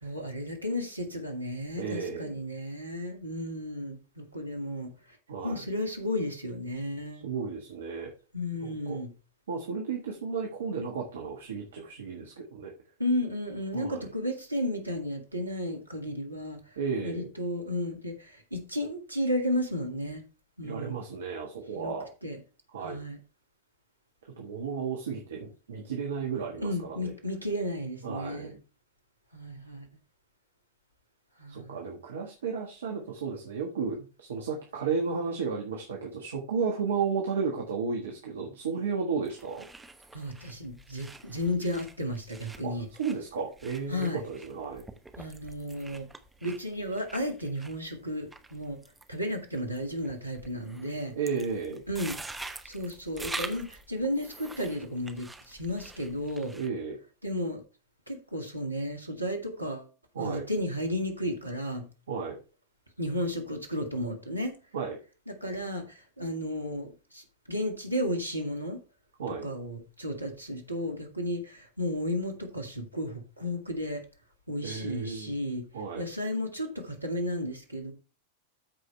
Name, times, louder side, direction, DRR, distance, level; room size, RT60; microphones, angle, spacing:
voice 1, 0.0-4.9 5.4-7.2 8.3-9.1 13.0-16.6 17.0-20.2 20.6-21.0 21.7-21.9 22.2-22.4 22.8-23.2 26.6-28.5 29.3-29.9 31.4-31.8 40.1-42.9 43.9-44.2 45.2-46.1 46.4-48.8 49.1-51.1 51.9-52.2 52.7-56.5 57.2-57.6 58.1-59.9 60.2-61.8 63.0-64.6 65.3-68.8 69.4-74.0 74.5-75.6 76.0-77.9, left 1 dB, 85° right, 4 dB, 2.0 m, -33 dB
voice 2, 1.7-2.4 5.3-5.6 7.2-8.1 8.6-9.0 9.5-12.7 13.7-14.1 16.8-17.3 20.6-22.1 22.7-23.0 24.4-27.1 28.0-28.6 31.5-39.6 42.6-44.8 51.1-51.8 56.5-57.0 60.1-60.4 62.1-62.4 64.7-65.0 69.2-69.5 74.6-75.3 75.7-76.1, right 5 dB, 65° right, 1 dB, 1.5 m, -33 dB
sound 1, 39.2-56.7, right 2 dB, 10° right, 0.9 m, -46 dB
13.5 x 4.9 x 3.3 m, 0.33 s
figure-of-eight pair, 90°, 0 cm